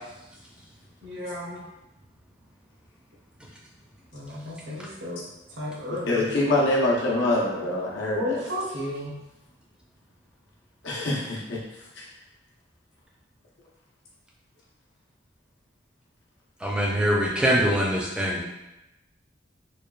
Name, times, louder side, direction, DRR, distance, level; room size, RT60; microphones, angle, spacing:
voice 1, 1.0-1.6 4.1-5.2 5.5-6.3 8.1-9.1, left 1 dB, 80° right, -4 dB, 0.8 m, -33 dB
voice 2, 6.1-8.4 10.8-12.0, left 1 dB, 90° left, -4 dB, 0.7 m, -25 dB
voice 3, 16.6-18.4, equal, 5° right, -4 dB, 0.4 m, -23 dB
3.1 x 2.3 x 2.3 m, 0.97 s
head